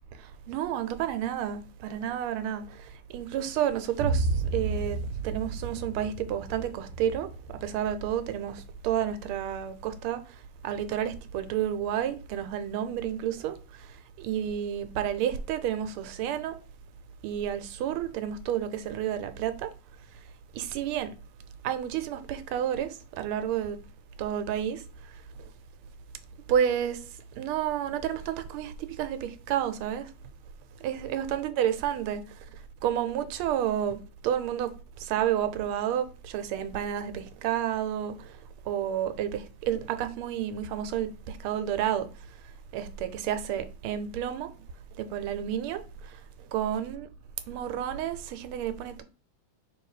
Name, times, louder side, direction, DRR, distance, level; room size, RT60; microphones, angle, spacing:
voice 1, 0.2-5.0 5.2-7.3 7.6-10.2 10.6-13.9 14.2-16.6 17.2-19.7 20.5-21.1 21.6-23.8 24.2-24.8 26.5-27.0 27.4-30.1 30.8-32.2 32.8-34.7 35.0-38.3 38.7-42.1 42.7-44.5 45.0-46.2 46.5-47.1 47.5-49.0, right 10 dB, 80° right, 1.5 m, -30 dB
Boom, 4.0-11.8, right 3 dB, 65° right, 1.2 m, -34 dB
3.4 x 3.2 x 4.7 m
omnidirectional pair, 2.4 m